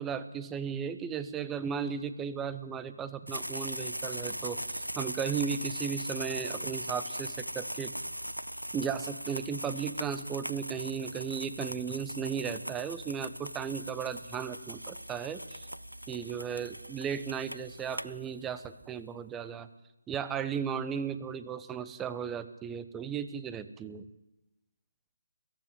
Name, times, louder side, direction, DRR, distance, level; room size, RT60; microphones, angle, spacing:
voice 1, 0.0-7.9 8.7-15.7 16.1-19.7 20.1-24.1, right 7 dB, 10° right, 12 dB, 1.1 m, -35 dB
sound 1, 3.3-18.7, equal, 90° right, 0.8 m, -40 dB
22.5 x 15.0 x 9.0 m, 0.94 s
figure-of-eight pair, 140°, 0 cm